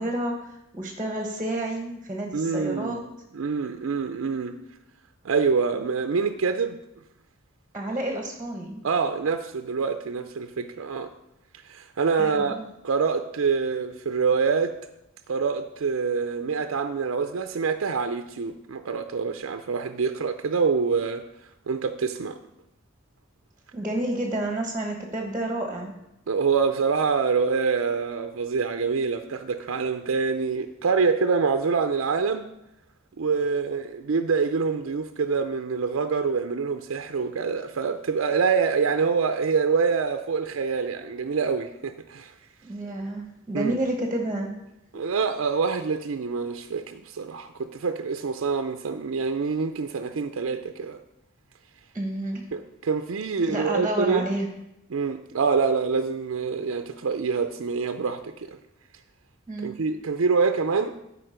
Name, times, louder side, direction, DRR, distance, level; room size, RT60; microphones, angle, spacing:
voice 1, 0.0-3.0 7.7-8.8 12.2-12.6 23.7-26.0 42.6-44.5 44.9-45.0 51.9-52.5 53.5-54.5 59.5-59.8, right 1 dB, 15° right, 2 dB, 1.1 m, -30 dB
voice 2, 2.3-3.0 3.3-4.6 5.2-6.8 8.8-11.1 11.6-12.6 12.8-14.7 15.3-21.2 21.7-22.4 26.3-32.5 33.2-42.3 43.5-43.8 44.9-51.0 52.5-54.3 54.9-58.6 59.6-61.0, right 5 dB, 70° right, 8 dB, 0.5 m, -26 dB
12.5 x 4.9 x 5.0 m, 0.86 s
head